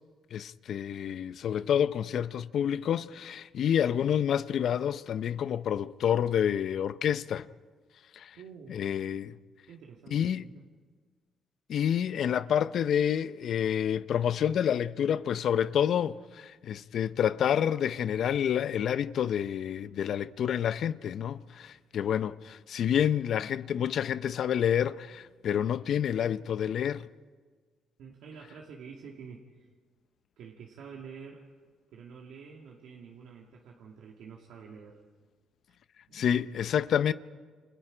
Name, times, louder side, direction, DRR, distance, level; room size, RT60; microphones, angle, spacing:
voice 1, 0.3-7.5 8.1-8.4 8.7-9.4 10.1-10.4 11.7-27.1 36.1-37.1, left 9 dB, 65° left, 0.6 m, -28 dB
voice 2, 8.4-8.8 9.7-10.7 21.5-21.6 28.0-29.7 30.4-31.5 31.9-35.0 36.1-36.3, right 6 dB, 80° right, 2.2 m, -48 dB
29.5 x 25.5 x 5.1 m
cardioid pair, 90°, 0 cm